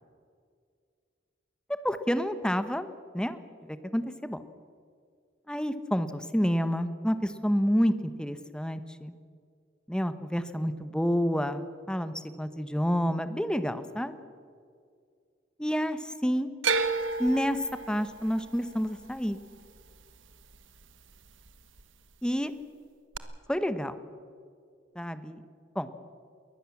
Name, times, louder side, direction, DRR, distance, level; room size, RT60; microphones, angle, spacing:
voice 1, 1.7-3.4 3.7-4.4 5.5-9.1 9.9-14.2 15.6-16.5 17.2-19.4 22.2-22.5 23.5-24.0 25.0-25.4 25.7-25.9, equal, 5° left, 11 dB, 1.0 m, -29 dB
sound 1, 16.6-20.8 21.1-21.8 23.1-23.2, right 4 dB, 90° right, 1.3 m, -32 dB
22.0 x 19.0 x 7.2 m, 2.2 s
head